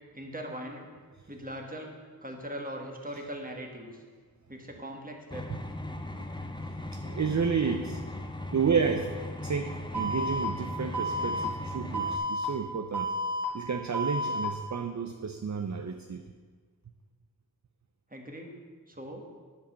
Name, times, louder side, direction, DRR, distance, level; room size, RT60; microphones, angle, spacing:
voice 1, 0.1-0.9 1.3-1.9 2.2-4.0 4.5-5.5 18.1-18.5 18.9-19.2, equal, 20° right, 1 dB, 1.6 m, -40 dB
sound 1, 5.3-12.2, left 1 dB, 10° left, 0.6 m, -38 dB
voice 2, 6.9-8.0 8.5-9.1 9.4-13.1 13.5-16.2, right 6 dB, 50° right, 6 dB, 0.5 m, -31 dB
Alarm, 9.9-10.4 10.9-11.4 11.9-12.4 12.9-13.4 13.9-14.4, right 1 dB, 85° right, 2.6 m, -31 dB
10.0 x 5.1 x 7.3 m, 1.6 s
wide cardioid pair, 60°, 38 cm